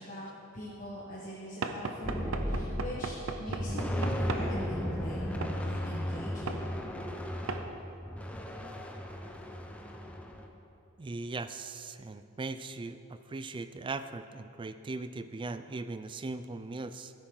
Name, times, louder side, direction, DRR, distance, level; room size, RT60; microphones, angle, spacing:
voice 1, 0.0-6.6, equal, 40° left, -7 dB, 1.4 m, -42 dB
Knock / Wood, 1.6-4.5 5.4-5.6 6.5-6.7 7.5-7.7, right 4 dB, 70° right, 0.7 m, -36 dB
sound 1, 2.0-3.1 3.4-10.5, equal, 5° left, 0.7 m, -35 dB
voice 2, 11.0-17.1, right 3 dB, 25° right, 11 dB, 0.4 m, -39 dB
13.0 x 10.5 x 3.8 m, 2.7 s
head